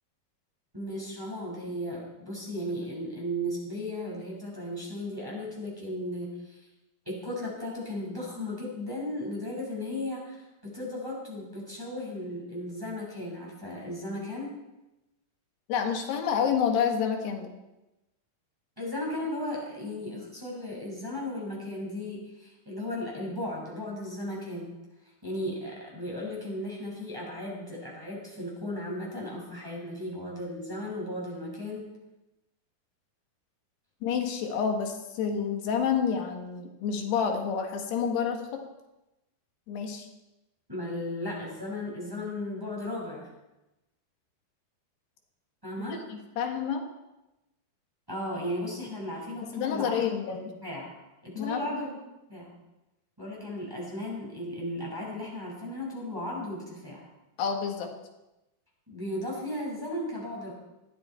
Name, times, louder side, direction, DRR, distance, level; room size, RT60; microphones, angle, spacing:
voice 1, 0.7-6.7 7.1-14.5 18.8-24.7 25.2-31.9 40.7-43.3 45.6-46.0 48.1-50.9 51.2-52.0 52.3-52.5 53.2-57.1 58.9-60.5, left 1 dB, 5° right, -3 dB, 5.6 m, -35 dB
voice 2, 15.7-17.5 34.0-38.6 39.7-40.1 45.9-46.8 49.5-50.4 51.4-51.6 57.4-57.9, left 7 dB, 75° left, 3 dB, 3.8 m, -29 dB
20.0 x 15.0 x 4.5 m, 0.98 s
omnidirectional pair, 4.8 m